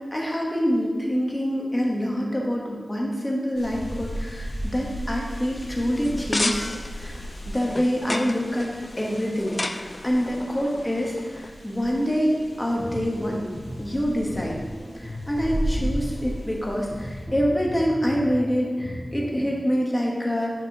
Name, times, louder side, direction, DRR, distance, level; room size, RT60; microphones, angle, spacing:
voice 1, 0.0-7.1 7.5-8.7 9.0-13.5 13.8-14.6 15.0-20.5, equal, 15° left, -2 dB, 1.4 m, -26 dB
sound 1, 3.5-17.2, equal, 80° left, 1.3 m, -36 dB
sound 2, 6.0-11.5, left 2 dB, 40° left, 0.4 m, -33 dB
sound 3, 12.6-19.6, equal, 15° right, 2.2 m, -36 dB
6.3 x 6.0 x 4.1 m, 1.5 s
wide cardioid pair, 75°, 0 cm